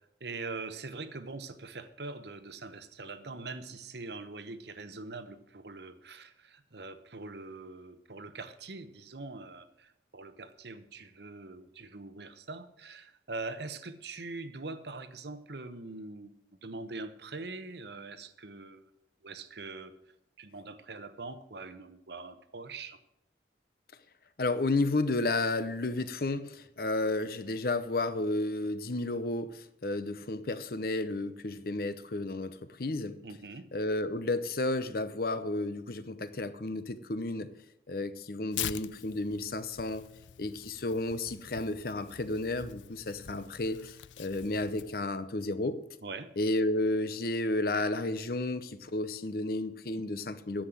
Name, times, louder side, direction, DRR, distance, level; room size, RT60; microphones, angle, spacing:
voice 1, 0.2-16.3 16.6-18.9 19.2-19.9 20.4-23.0 33.2-33.7 46.0-46.3, right 3 dB, 65° right, 11 dB, 0.9 m, -43 dB
voice 2, 24.4-33.2 33.7-37.5 37.9-40.0 40.4-45.8 46.4-50.6, left 2 dB, 55° left, 13 dB, 0.7 m, -32 dB
Tearing, 38.5-45.0, left 12 dB, 90° left, 0.4 m, -44 dB
10.0 x 7.5 x 7.7 m, 0.81 s
head